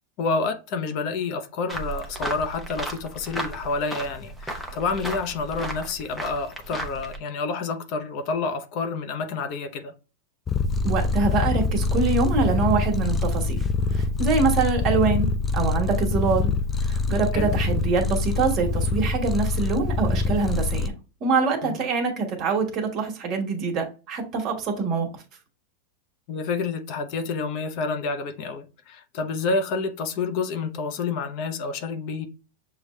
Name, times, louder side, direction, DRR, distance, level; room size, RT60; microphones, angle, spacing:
voice 1, 0.2-9.9 17.3-17.5 21.6-21.8 26.3-32.3, left 4 dB, 45° left, 0.7 m, -29 dB
sound 1, 1.7-7.2, right 1 dB, ahead, 0.8 m, -34 dB
Purr, 10.5-20.9, left 3 dB, 15° left, 0.4 m, -24 dB
voice 2, 10.8-13.6 13.9-16.5 16.8-20.9 21.2-25.1, right 4 dB, 35° right, 1.4 m, -24 dB
6.5 x 2.3 x 3.1 m
supercardioid pair, 140°, 0 cm